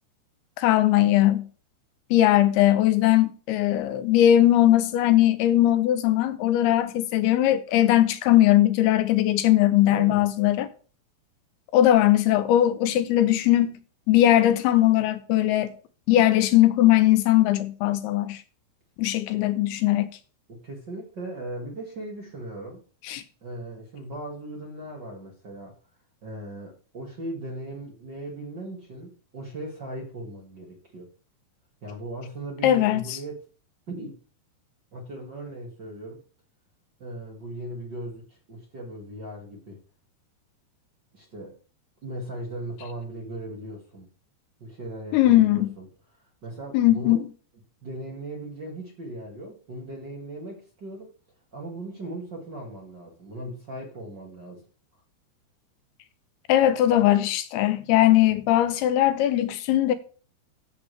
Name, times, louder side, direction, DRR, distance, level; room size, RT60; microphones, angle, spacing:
voice 1, 0.6-1.5 2.1-10.7 11.7-13.8 14.1-15.7 16.1-18.4 19.0-20.1 23.1-23.2 32.6-33.2 45.1-45.7 46.7-47.3 56.5-59.9, left 13 dB, 85° left, 2.7 m, -20 dB
voice 2, 9.9-10.3 20.5-22.8 23.4-25.8 26.2-31.1 31.8-33.4 33.9-34.2 34.9-36.2 37.0-39.8 41.1-41.5 42.0-44.1 44.6-45.9 46.4-47.2 47.8-51.1 51.5-54.6, right 1 dB, 40° right, 1.7 m, -38 dB
13.0 x 7.2 x 3.3 m
omnidirectional pair, 4.6 m